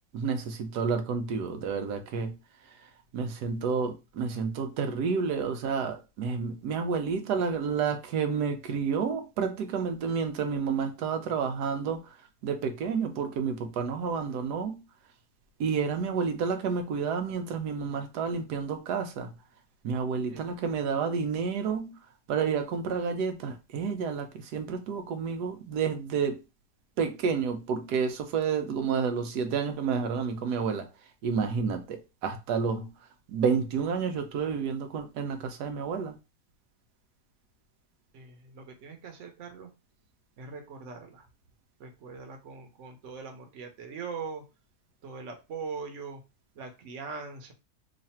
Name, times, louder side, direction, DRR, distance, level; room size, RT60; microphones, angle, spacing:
voice 1, 0.1-2.4 3.1-12.0 12.4-14.8 15.6-19.3 19.8-22.0 22.3-26.4 27.0-30.9 31.2-32.9 33.3-36.1, right 6 dB, 90° right, 1.2 m, -30 dB
voice 2, 20.3-20.8 38.1-39.7 40.4-41.3 41.8-44.4 45.0-46.2 46.6-47.5, right 5 dB, 55° right, 1.1 m, -41 dB
3.2 x 2.5 x 4.2 m
omnidirectional pair, 1.7 m